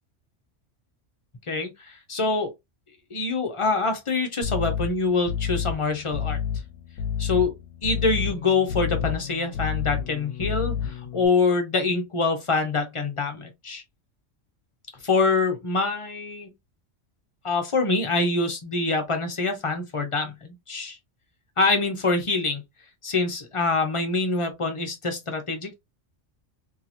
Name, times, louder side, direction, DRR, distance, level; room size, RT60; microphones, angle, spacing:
voice 1, 1.5-2.5 3.1-6.4 7.2-7.5 7.8-13.8 15.0-16.5 17.4-21.0 21.6-22.6 23.0-25.7, left 3 dB, 35° left, 0.6 m, -25 dB
sound 1, 4.4-11.3, left 8 dB, 80° left, 0.9 m, -30 dB
2.8 x 2.8 x 2.4 m
omnidirectional pair, 1.3 m